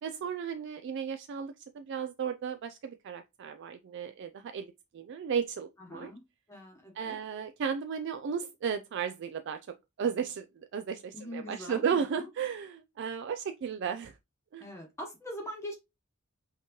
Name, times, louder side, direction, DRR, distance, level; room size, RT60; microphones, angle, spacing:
voice 1, 0.0-4.7 4.9-6.1 7.0-9.6 10.0-14.2 14.5-14.6, right 7 dB, 55° right, 0.3 m, -34 dB
voice 2, 5.8-6.2 6.5-7.2 11.1-12.3 14.6-15.7, equal, 15° left, 1.1 m, -42 dB
5.6 x 2.9 x 3.0 m
head